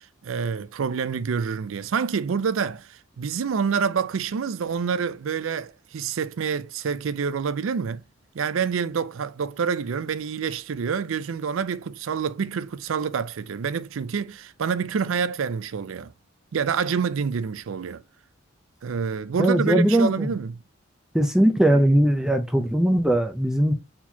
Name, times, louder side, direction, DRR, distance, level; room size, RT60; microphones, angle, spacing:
voice 1, 0.0-8.0 8.3-16.1 16.5-18.0 18.8-20.6, right 6 dB, 80° right, 0.4 m, -27 dB
voice 2, 19.4-20.3 21.1-23.7, right 1 dB, 5° right, 0.5 m, -20 dB
4.4 x 4.2 x 2.8 m
head